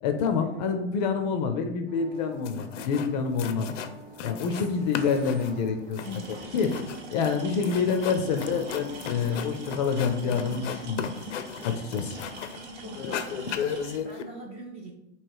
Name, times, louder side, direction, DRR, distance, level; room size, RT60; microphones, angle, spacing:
voice 1, 0.0-3.8 4.2-6.7 7.1-11.1 11.6-12.2, left 5 dB, 35° left, 6 dB, 0.5 m, -27 dB
sound 1, 1.9-12.3, right 2 dB, 35° right, 1.0 m, -50 dB
sound 2, 2.2-2.3 2.4-3.1 3.4-4.7 4.9-12.6 12.9-14.2, left 8 dB, 85° left, 0.5 m, -36 dB
voice 2, 4.4-5.1 12.7-14.9, right 2 dB, 20° right, 0 dB, 0.4 m, -44 dB
sound 3, 6.0-14.0, right 1 dB, 70° right, 1.1 m, -42 dB
3.1 x 2.9 x 4.5 m, 0.86 s
hypercardioid pair, 140°, 36 cm